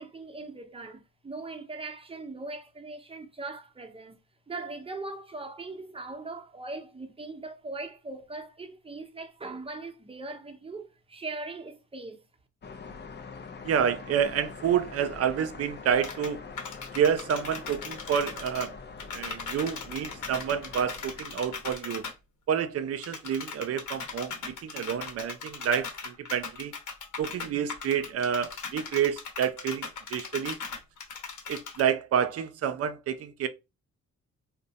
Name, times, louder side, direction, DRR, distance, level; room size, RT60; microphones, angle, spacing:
voice 1, 0.0-4.2 4.5-12.2, right 3 dB, 20° right, 0.7 m, -40 dB
sound 1, 12.6-21.8, left 4 dB, 35° left, 0.5 m, -44 dB
voice 2, 13.6-16.4 16.9-18.7 19.1-22.1 22.5-26.7 27.2-30.6 31.5-33.5, right 8 dB, 50° right, 0.5 m, -29 dB
sound 2, 16.0-16.3 16.6-18.7 19.0-22.1 23.0-31.8, left 5 dB, 75° left, 1.0 m, -39 dB
2.5 x 2.1 x 3.9 m
cardioid pair, 75°, 31 cm